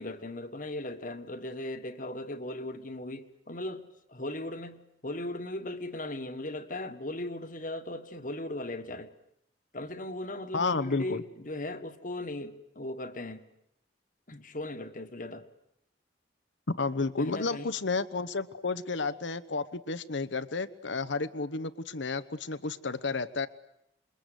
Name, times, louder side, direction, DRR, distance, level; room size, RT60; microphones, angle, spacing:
voice 1, 0.0-9.1 9.7-13.5 14.3-15.5 17.2-17.7, left 1 dB, 45° left, 1.5 m, -38 dB
voice 2, 10.5-11.2 16.7-23.5, left 3 dB, 85° left, 1.1 m, -31 dB
27.5 x 22.5 x 8.1 m
head